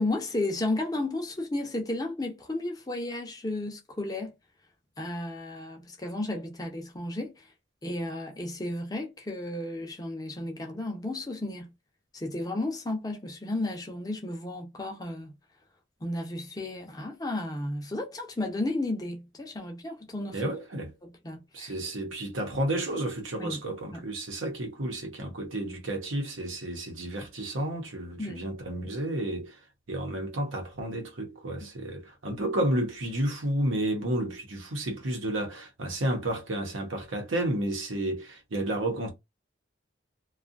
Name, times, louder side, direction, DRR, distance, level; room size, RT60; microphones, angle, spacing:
voice 1, 0.0-4.3 5.0-7.5 7.8-11.7 12.1-15.3 16.0-20.5 21.0-21.7 23.4-23.6 23.9-24.1 28.2-28.4, left 2 dB, 20° left, 0.5 m, -33 dB
voice 2, 20.3-20.9 21.5-29.6 29.9-39.1, right 1 dB, 85° right, 0.9 m, -31 dB
2.6 x 2.3 x 2.4 m
head